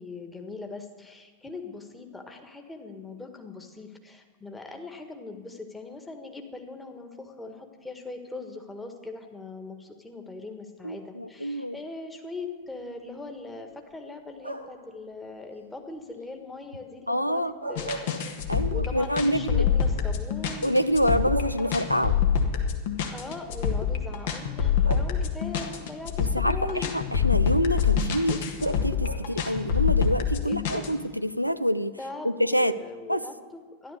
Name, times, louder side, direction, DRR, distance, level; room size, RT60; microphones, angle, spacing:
voice 1, 0.0-18.1 18.7-20.7 23.1-27.1 27.4-27.5 28.3-28.5 30.4-31.0 32.0-34.0, left 2 dB, 10° left, 5 dB, 1.6 m, -40 dB
voice 2, 10.8-11.8 17.1-17.5 18.5-19.7 20.6-22.2 26.2-31.9 32.2-32.8 33.1-33.3, equal, 90° left, 12 dB, 0.5 m, -26 dB
sound 1, 14.4-14.9 17.4-18.8 19.2-19.3 20.8-20.9 21.3-22.4 23.5-23.6 24.8-25.6 28.6-29.5, right 2 dB, 85° right, 1.3 m, -37 dB
sound 2, 17.8-30.9, left 7 dB, 55° left, 1.5 m, -25 dB
13.5 x 11.5 x 6.7 m, 1.4 s
figure-of-eight pair, 90°, 0 cm